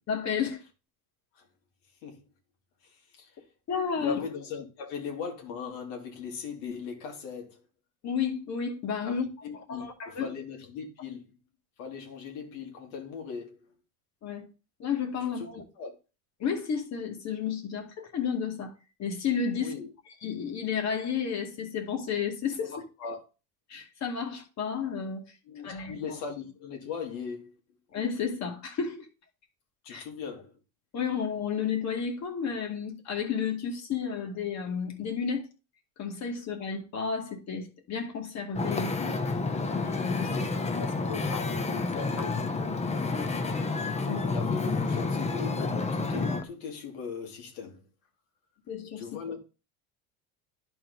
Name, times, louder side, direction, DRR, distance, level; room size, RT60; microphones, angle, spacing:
voice 1, 0.1-0.6 3.7-4.2 8.0-9.3 9.7-10.3 14.2-14.5 14.8-15.6 16.4-18.7 19.0-19.7 20.2-22.7 23.7-25.3 25.6-26.0 27.9-29.1 29.9-30.0 30.9-35.5 36.0-39.1 39.7-40.6 41.3-41.4 44.0-44.2 48.7-49.1, left 6 dB, 45° left, 2.2 m, -32 dB
voice 2, 2.8-3.3 4.0-7.6 9.0-9.2 9.4-11.4 11.8-13.7 15.4-15.5 15.8-16.0 19.6-19.9 22.7-23.2 25.5-27.6 29.8-30.6 40.3-40.5 40.7-42.6 44.0-47.8 49.0-49.4, left 5 dB, 75° left, 2.5 m, -39 dB
Wind / Ocean, 38.5-46.4, left 3 dB, 15° left, 0.9 m, -30 dB
11.0 x 4.5 x 4.0 m
supercardioid pair, 110°, 39 cm